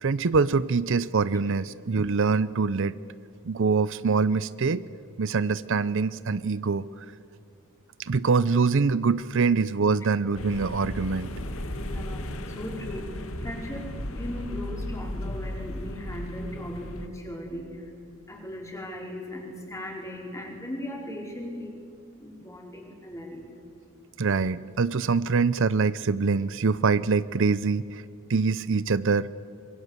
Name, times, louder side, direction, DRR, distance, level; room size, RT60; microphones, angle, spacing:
voice 1, 0.0-3.0 3.5-4.8 5.2-7.1 8.0-11.3 24.2-28.0 28.3-29.3, right 4 dB, 60° right, 17 dB, 0.6 m, -24 dB
sound 1, 10.3-17.1, left 1 dB, 70° left, 2.0 m, -35 dB
voice 2, 11.8-17.9 18.3-21.8 22.2-23.5, left 1 dB, 15° left, 0 dB, 4.8 m, -38 dB
26.0 x 23.0 x 8.2 m, 2.6 s
head